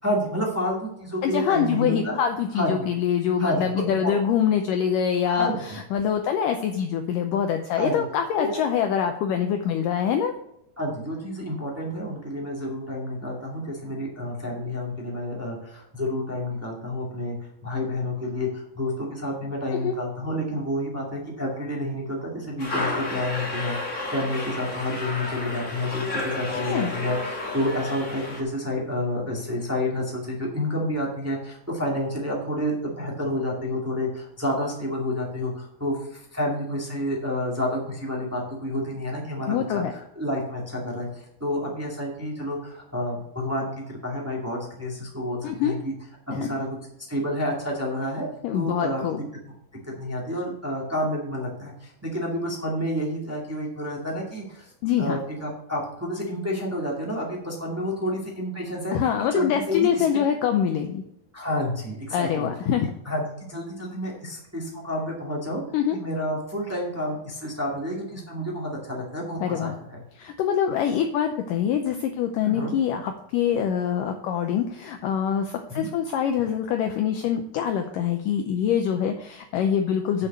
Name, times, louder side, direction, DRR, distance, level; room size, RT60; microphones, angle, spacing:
voice 1, 0.0-2.2 2.5-2.8 3.4-4.1 5.2-5.6 7.7-7.9 8.4-8.5 10.8-17.3 17.6-45.9 46.3-46.7 47.1-48.3 48.5-49.0 50.0-54.7 55.0-59.0 59.3-60.0 61.3-62.5 62.8-65.6 65.9-70.0 72.4-72.7 75.7-75.9 80.2-80.3, left 1 dB, 15° right, -3 dB, 0.4 m, -29 dB
voice 2, 1.2-10.3 19.7-19.9 26.5-26.9 39.5-39.9 45.4-45.8 46.3-46.4 48.4-49.2 54.8-55.2 58.9-61.0 62.1-62.9 65.7-66.0 69.4-69.7 70.2-80.3, left 8 dB, 85° left, 5 dB, 1.9 m, -25 dB
sound 1, 22.6-28.4, left 2 dB, 45° left, 0.9 m, -31 dB
7.5 x 6.6 x 6.7 m, 0.77 s
omnidirectional pair, 4.6 m